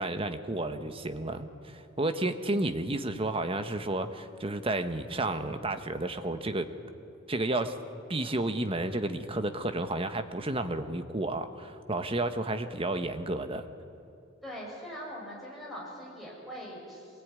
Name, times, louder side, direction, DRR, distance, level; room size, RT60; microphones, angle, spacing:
voice 1, 0.0-1.5 1.7-6.7 7.3-7.8 8.1-13.6, right 2 dB, 30° right, 9 dB, 1.1 m, -31 dB
voice 2, 14.4-17.2, equal, ahead, -5 dB, 7.0 m, -42 dB
23.0 x 18.5 x 9.5 m, 2.6 s
head